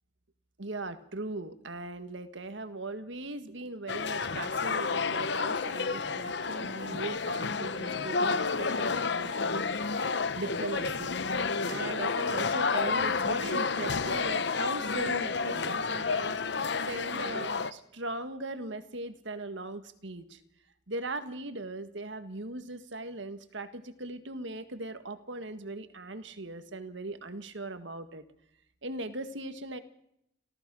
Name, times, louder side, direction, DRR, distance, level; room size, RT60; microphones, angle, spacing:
voice 1, 0.6-9.7 10.3-11.2 11.7-16.4 16.8-20.4 20.9-28.2 28.8-29.8, right 2 dB, 70° right, 10 dB, 1.8 m, -39 dB
sound 1, 3.9-17.7, left 4 dB, 60° left, 0.9 m, -30 dB
29.0 x 15.0 x 6.3 m, 0.78 s
head